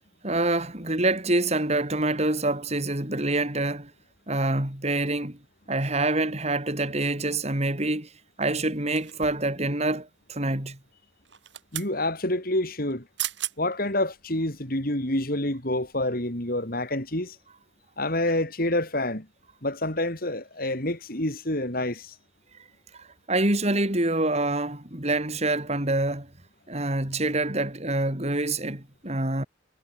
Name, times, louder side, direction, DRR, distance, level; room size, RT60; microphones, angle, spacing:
voice 1, 0.2-3.9 4.3-5.4 5.7-8.1 8.4-10.8 23.0-26.3 26.7-29.4, right 2 dB, 35° right, 4.1 m, -26 dB
sound 1, 8.9-9.5 11.2-11.9 12.9-13.0 13.2-13.6 14.1-14.2, right 14 dB, 70° right, 7.4 m, -34 dB
voice 2, 11.7-13.0 13.6-17.4 18.0-19.3 19.6-22.1, left 1 dB, 50° left, 5.5 m, -27 dB
head